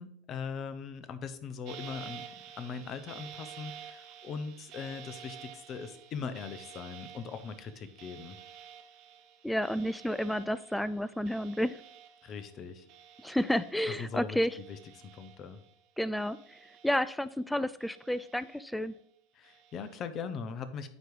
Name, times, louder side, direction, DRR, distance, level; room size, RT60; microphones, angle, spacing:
voice 1, 0.0-2.2 2.6-8.4 12.2-12.9 13.9-15.6 19.3-20.9, left 5 dB, 40° left, 11 dB, 0.8 m, -40 dB
sound 1, 1.7-14.2 14.5-15.7 16.2-17.4 17.8-18.9 19.4-20.0, right 8 dB, 55° right, 1.2 m, -51 dB
voice 2, 9.4-11.8 13.2-14.5 16.0-16.4 16.8-18.9, equal, 5° left, 16 dB, 0.3 m, -31 dB
9.4 x 3.1 x 5.2 m, 0.69 s
hypercardioid pair, 95°, 0 cm